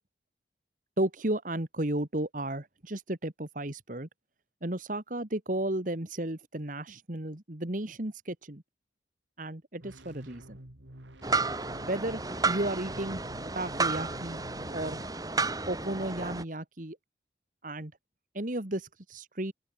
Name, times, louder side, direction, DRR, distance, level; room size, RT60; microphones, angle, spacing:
voice 1, 1.0-4.1 4.6-8.6 9.4-10.6 11.8-12.2 12.5-13.2 13.5-14.4 14.7-15.0 15.7-17.0 17.6-17.9 18.3-19.5, right 1 dB, 45° right, 1.9 m, -33 dB
sound 1, 9.8-15.1, right 1 dB, 85° right, 3.7 m, -49 dB
sound 2, 11.2-16.4, right 3 dB, 20° right, 2.6 m, -32 dB
open air
head